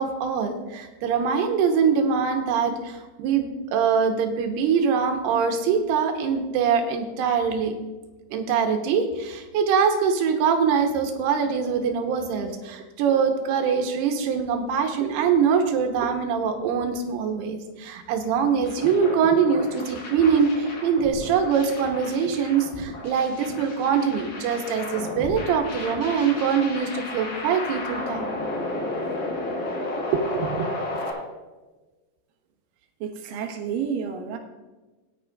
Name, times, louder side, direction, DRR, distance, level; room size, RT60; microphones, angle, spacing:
voice 1, 0.0-7.7 8.3-28.3 30.1-30.7 30.9-31.0, right 6 dB, 90° right, 4 dB, 2.9 m, -23 dB
sound 1, 18.6-31.1, left 2 dB, 70° left, 4.6 m, -33 dB
voice 2, 33.0-34.4, right 7 dB, 70° right, 2 dB, 2.6 m, -30 dB
18.5 x 9.8 x 2.4 m, 1.2 s
omnidirectional pair, 4.7 m